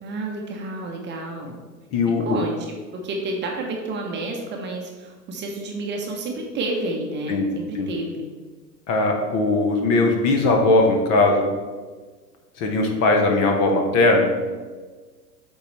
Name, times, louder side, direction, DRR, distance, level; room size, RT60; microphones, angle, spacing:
voice 1, 0.0-1.6 2.2-2.8 3.0-8.3, right 2 dB, 20° right, 0 dB, 0.9 m, -30 dB
voice 2, 1.9-2.2 7.3-7.5 7.7-7.9 8.9-11.5 12.6-14.3, left 2 dB, 30° left, 3 dB, 1.1 m, -19 dB
7.9 x 4.0 x 4.3 m, 1.4 s
figure-of-eight pair, 100°, 48 cm